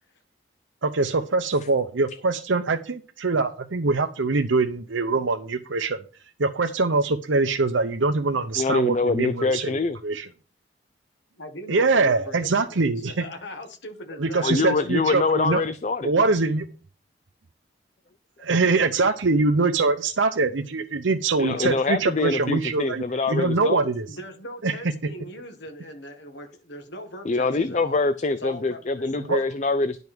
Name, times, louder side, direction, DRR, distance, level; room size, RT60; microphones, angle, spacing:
voice 1, 0.8-6.0 6.4-9.8 10.0-10.3 11.7-13.2 14.2-15.6 16.0-16.7 18.4-24.1 24.6-24.7 29.3-29.4, right 3 dB, 80° right, 0.8 m, -23 dB
voice 2, 8.5-10.0 14.4-16.1 21.4-23.9 27.2-30.0, left 3 dB, 35° left, 0.4 m, -24 dB
voice 3, 11.4-14.9 21.4-21.8 24.1-28.0 28.4-29.3, left 1 dB, 70° left, 1.7 m, -40 dB
10.5 x 5.4 x 6.1 m
head